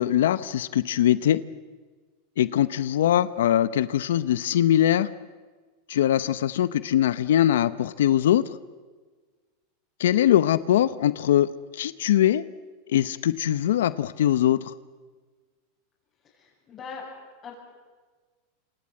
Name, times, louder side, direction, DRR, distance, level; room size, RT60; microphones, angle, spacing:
voice 1, 0.0-1.4 2.4-5.1 5.9-8.4 10.0-12.4 12.9-14.7, left 11 dB, 85° left, 16 dB, 0.8 m, -22 dB
voice 2, 2.5-2.8 16.2-17.1 17.4-17.5, left 6 dB, 30° left, -7 dB, 7.9 m, -42 dB
27.5 x 24.5 x 7.7 m, 1.4 s
supercardioid pair, 125°, 0 cm